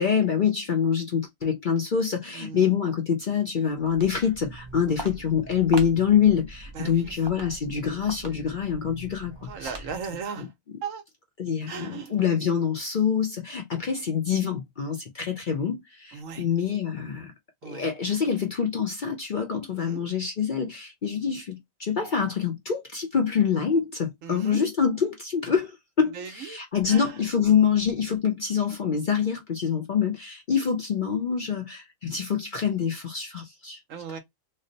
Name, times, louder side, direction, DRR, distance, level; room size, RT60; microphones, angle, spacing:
voice 1, 0.0-9.7 11.4-17.3 17.6-33.8, left 7 dB, 50° left, 0.6 m, -25 dB
voice 2, 2.3-2.7 4.9-5.1 6.7-7.2 9.4-10.5 10.8-11.0 11.7-12.2 16.1-16.5 17.6-18.2 19.9-20.1 21.3-21.4 24.2-24.7 26.1-26.6 26.9-27.2 33.9-34.2, right 6 dB, 70° right, 1.1 m, -37 dB
Walk footsteps, 3.7-10.2, right 3 dB, 30° right, 0.5 m, -42 dB
3.1 x 2.0 x 3.9 m
omnidirectional pair, 1.4 m